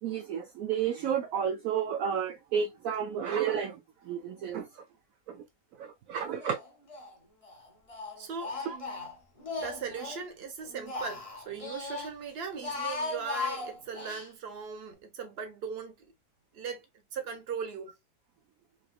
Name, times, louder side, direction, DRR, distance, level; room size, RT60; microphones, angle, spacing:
voice 1, 0.0-4.8 5.3-5.4 5.8-6.6 8.7-8.8, right 8 dB, 70° right, 0.9 m, -32 dB
Speech, 6.4-7.1 7.4-10.2 10.6-12.1 12.5-14.3, left 3 dB, 30° left, 0.8 m, -38 dB
voice 2, 8.2-8.6 9.6-16.1 16.5-16.8 17.1-17.9, right 6 dB, 45° right, 1.0 m, -39 dB
3.9 x 3.0 x 2.2 m
omnidirectional pair, 1.7 m